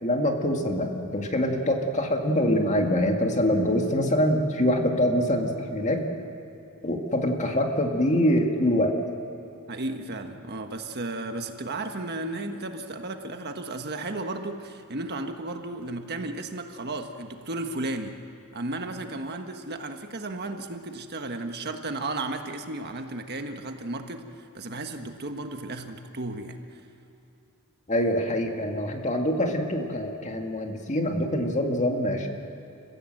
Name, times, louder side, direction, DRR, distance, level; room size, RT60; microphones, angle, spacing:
voice 1, 0.0-6.1 6.8-9.0 27.9-32.3, left 1 dB, 35° left, 3 dB, 2.1 m, -24 dB
voice 2, 9.7-18.1 18.5-26.8, right 2 dB, 50° right, 5 dB, 1.4 m, -34 dB
29.5 x 15.5 x 7.9 m, 2.9 s
head